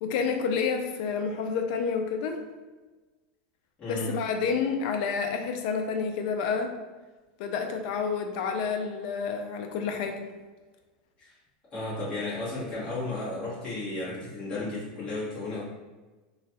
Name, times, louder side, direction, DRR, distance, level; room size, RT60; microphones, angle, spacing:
voice 1, 0.0-2.4 3.9-6.7 7.4-10.2, left 5 dB, 60° left, 4 dB, 0.4 m, -29 dB
voice 2, 3.8-4.1 11.2-11.3 11.7-15.6, left 2 dB, 25° left, -10 dB, 1.4 m, -33 dB
3.0 x 2.3 x 2.8 m, 1.3 s
supercardioid pair, 140°, 5 cm